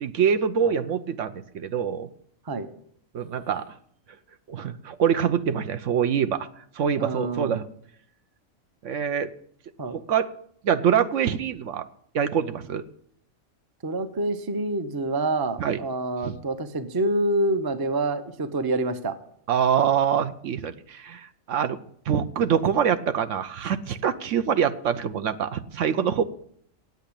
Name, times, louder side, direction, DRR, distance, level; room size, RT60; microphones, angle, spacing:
voice 1, 0.0-2.1 3.1-3.6 4.5-6.5 6.8-7.7 8.8-9.3 9.9-10.3 10.6-11.9 12.1-12.8 15.6-15.8 16.2-16.4 19.5-21.8 22.1-26.2, right 8 dB, 65° right, 11 dB, 1.0 m, -25 dB
voice 2, 7.0-7.6 9.8-10.0 13.8-19.1, right 2 dB, 25° right, 10 dB, 0.6 m, -27 dB
9.0 x 8.3 x 8.6 m, 0.64 s
omnidirectional pair, 1.4 m